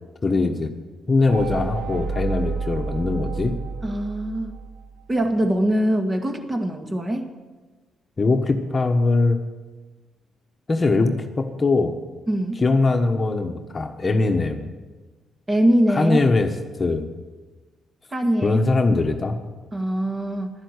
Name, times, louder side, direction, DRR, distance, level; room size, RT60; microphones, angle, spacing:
voice 1, 0.2-0.7 1.1-3.5 8.2-9.4 10.7-11.9 12.6-14.7 15.9-16.5 16.8-17.1 18.4-19.4, left 3 dB, 30° left, 5 dB, 1.2 m, -21 dB
sound 1, 1.3-5.0, right 4 dB, 70° right, 2.3 m, -30 dB
voice 2, 3.8-4.6 5.1-7.3 12.3-12.6 15.5-16.2 18.1-18.6 19.7-20.5, right 1 dB, 25° right, 4 dB, 1.9 m, -22 dB
12.0 x 10.0 x 8.1 m, 1.3 s
cardioid pair, 90°, 0 cm